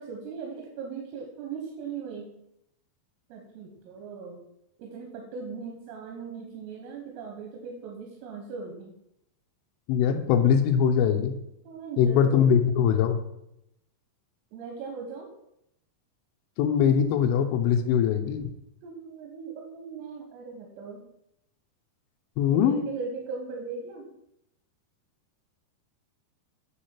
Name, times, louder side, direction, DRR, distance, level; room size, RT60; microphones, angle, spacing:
voice 1, 0.0-2.3 3.3-4.4 4.8-9.0 11.7-12.5 14.5-15.3 18.8-21.1 22.5-24.1, right 5 dB, 90° right, 0 dB, 3.4 m, -39 dB
voice 2, 9.9-11.3 12.0-13.2 16.6-18.5 22.4-22.9, left 8 dB, 85° left, 4 dB, 2.9 m, -22 dB
9.3 x 3.1 x 4.3 m, 0.81 s
omnidirectional pair, 5.7 m